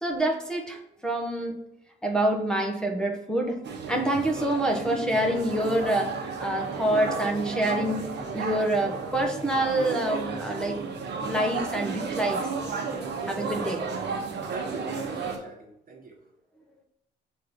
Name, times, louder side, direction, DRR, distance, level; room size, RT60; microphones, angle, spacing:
voice 1, 0.0-1.6 2.0-3.6 3.9-6.1 6.4-8.0 8.3-10.8 11.2-12.4 13.3-13.8, right 1 dB, 5° left, 1 dB, 1.2 m, -26 dB
sound 1, 3.6-15.4, right 4 dB, 60° right, 1.1 m, -33 dB
voice 2, 6.8-7.3 12.8-13.2 14.5-16.2, right 3 dB, 45° right, 3 dB, 1.0 m, -41 dB
5.5 x 3.9 x 5.2 m, 0.77 s
cardioid pair, 90°, 20 cm